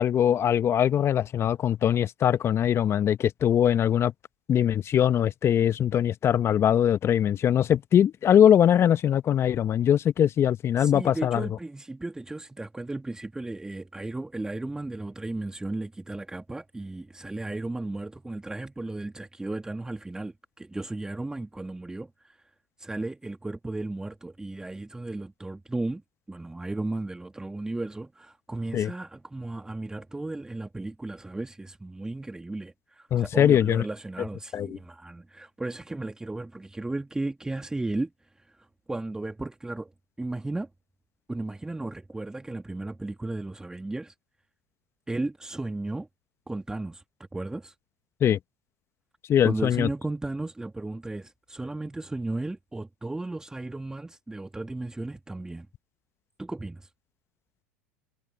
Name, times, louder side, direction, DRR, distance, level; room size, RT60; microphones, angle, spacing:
voice 1, 0.0-4.1 4.5-11.5 28.7-28.9 33.1-33.8 34.5-34.8 48.2-48.4 49.3-49.9, left 9 dB, 35° left, 1.1 m, -22 dB
voice 2, 10.8-22.4 22.8-26.0 26.3-38.1 38.5-39.9 40.2-40.7 41.3-44.1 45.1-46.1 46.5-47.0 47.3-47.7 49.4-55.7 56.4-56.9, right 2 dB, 10° right, 1.8 m, -35 dB
hypercardioid pair, 85°, 7 cm